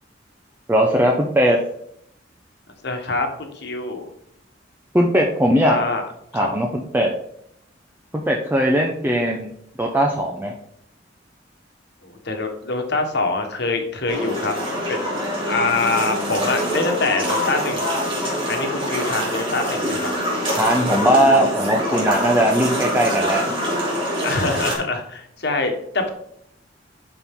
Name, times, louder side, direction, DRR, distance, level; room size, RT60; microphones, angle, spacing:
voice 1, 0.7-1.6 4.9-5.8 6.3-7.1 8.3-9.5 9.8-10.5 20.5-23.6, equal, 10° right, 0 dB, 0.7 m, -19 dB
voice 2, 2.8-4.1 5.6-6.0 6.3-6.5 12.0-14.5 14.9-15.1 15.5-17.9 18.5-20.1 24.2-26.1, left 3 dB, 65° left, 4 dB, 1.4 m, -24 dB
sound 1, 14.1-24.8, equal, 30° right, 2.7 m, -24 dB
11.0 x 4.5 x 3.7 m, 0.72 s
head